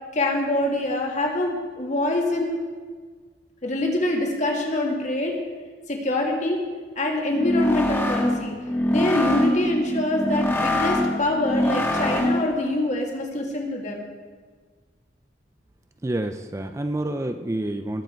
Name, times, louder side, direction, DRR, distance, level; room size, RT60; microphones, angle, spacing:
voice 1, 0.1-2.6 3.6-5.4 5.9-6.6 7.0-8.6 8.9-14.1, left 1 dB, 40° left, 0 dB, 2.1 m, -25 dB
sound 1, 7.3-12.6, left 1 dB, 15° left, 1.4 m, -24 dB
voice 2, 16.0-18.0, right 1 dB, 15° right, 7 dB, 0.4 m, -28 dB
21.0 x 7.6 x 4.5 m, 1.5 s
head